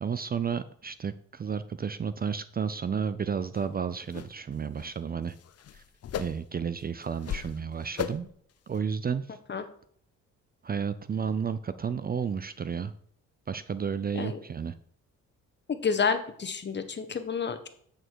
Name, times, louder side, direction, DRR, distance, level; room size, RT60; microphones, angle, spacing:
voice 1, 0.0-5.3 5.7-5.8 6.2-8.3 8.7-9.4 10.6-12.9 13.5-14.7, right 6 dB, 30° right, 14 dB, 0.5 m, -32 dB
sound 1, 3.5-3.7 4.1-4.3 4.6-4.9 5.3-6.6 7.0-7.6 8.0-8.3 8.7-8.8, left 9 dB, 55° left, 0.8 m, -37 dB
voice 2, 15.7-17.7, left 6 dB, 35° left, 9 dB, 1.2 m, -29 dB
8.8 x 6.5 x 4.6 m, 0.63 s
cardioid pair, 90°, 30 cm